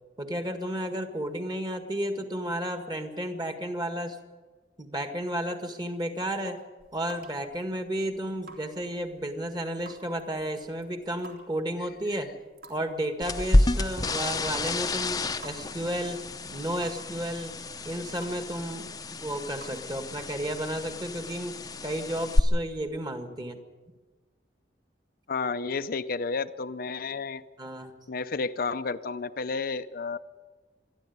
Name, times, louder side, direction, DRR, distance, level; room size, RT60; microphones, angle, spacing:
voice 1, 0.2-4.2 4.8-6.6 6.9-12.3 12.7-16.2 16.5-17.6 17.8-23.6 27.6-27.9, right 1 dB, 25° right, 7 dB, 1.8 m, -32 dB
sound 1, 6.6-20.1, right 1 dB, 55° right, 3.5 m, -53 dB
sound 2, 13.2-22.4, left 1 dB, 20° left, 0.7 m, -29 dB
voice 2, 25.3-27.4 28.1-30.2, left 4 dB, 55° left, 11 dB, 0.6 m, -31 dB
25.0 x 11.0 x 9.5 m, 1.3 s
head